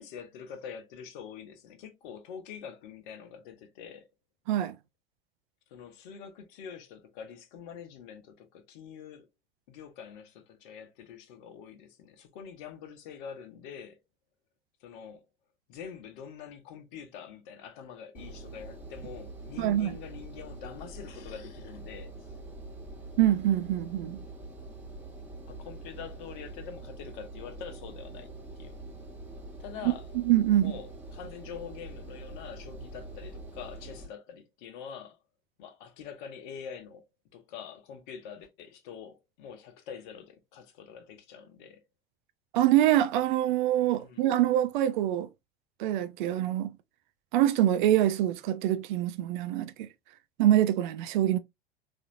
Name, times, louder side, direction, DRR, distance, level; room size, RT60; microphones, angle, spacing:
voice 1, 0.0-4.1 5.7-9.3 9.7-14.0 14.8-15.2 15.7-22.1 25.5-28.3 28.6-28.7 29.6-30.1 30.6-35.2 35.6-37.0 37.3-41.8 44.0-44.2, left 7 dB, 55° left, 0.9 m, -45 dB
Engine, 18.1-34.1, right 2 dB, 5° right, 1.4 m, -44 dB
voice 2, 19.6-20.0 23.2-24.2 30.1-30.7 42.5-45.3 45.8-46.7 47.3-49.9 50.4-51.4, right 12 dB, 55° right, 0.5 m, -25 dB
4.1 x 2.7 x 2.5 m
figure-of-eight pair, 75°, 30 cm